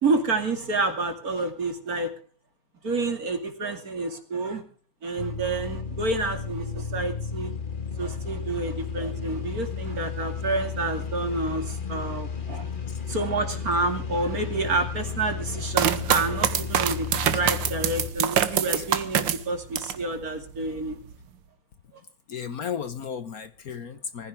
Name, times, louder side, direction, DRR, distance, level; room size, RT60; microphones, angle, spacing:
voice 1, 0.0-2.1 2.8-4.6 5.0-7.5 8.0-12.7 13.1-21.0, right 3 dB, 50° right, 6 dB, 2.9 m, -29 dB
sound 1, 5.2-18.1, left 6 dB, 25° left, 2.1 m, -33 dB
sound 2, 15.7-20.0 20.5-21.1, right 9 dB, 85° right, 1.8 m, -25 dB
voice 2, 22.3-24.3, left 7 dB, 55° left, 11 dB, 1.3 m, -34 dB
22.5 x 15.0 x 3.6 m, 0.39 s
omnidirectional pair, 2.0 m